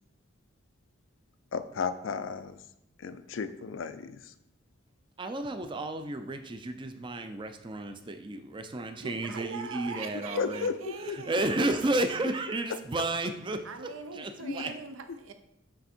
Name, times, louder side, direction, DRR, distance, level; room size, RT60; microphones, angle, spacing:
voice 1, 1.5-2.6 3.0-4.3 10.4-11.2 14.4-14.8, left 5 dB, 70° left, 11 dB, 0.4 m, -34 dB
voice 2, 5.2-10.7 11.0-13.7 14.1-14.7, right 2 dB, 25° right, 8 dB, 0.4 m, -32 dB
voice 3, 8.9-11.8 13.6-15.3, right 5 dB, 80° right, 8 dB, 0.6 m, -41 dB
6.7 x 3.5 x 4.3 m, 0.84 s
head